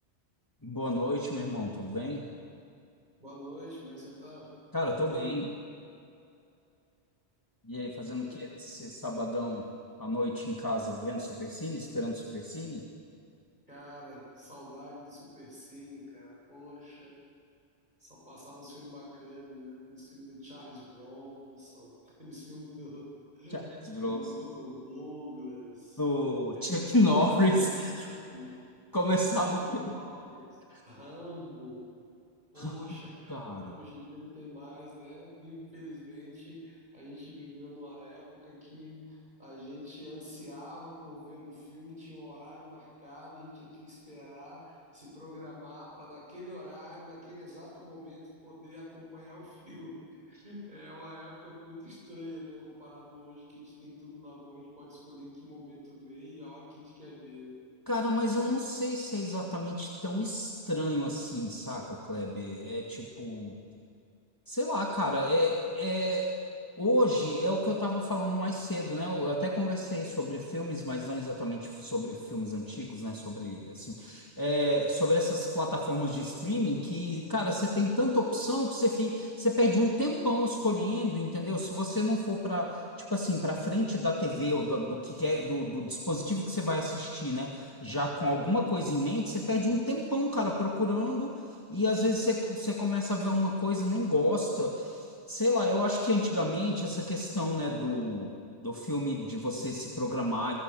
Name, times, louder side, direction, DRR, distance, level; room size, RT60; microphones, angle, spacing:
voice 1, 0.6-2.2 4.7-5.5 7.7-9.7 10.0-12.9 23.5-24.2 26.0-28.1 28.9-29.6 30.7-30.8 32.6-32.7 33.3-33.8 57.9-63.5 64.5-66.3 66.8-91.4 91.7-98.4 98.6-100.5, left 1 dB, 20° left, -2 dB, 2.3 m, -30 dB
voice 2, 3.2-4.5 5.0-5.3 8.2-8.8 13.7-17.2 18.0-23.1 23.3-26.0 26.5-26.8 27.6-28.6 29.3-30.6 30.8-31.8 32.5-57.6, left 1 dB, 40° right, -5 dB, 8.0 m, -46 dB
29.5 x 21.5 x 7.8 m, 2.5 s
omnidirectional pair, 1.1 m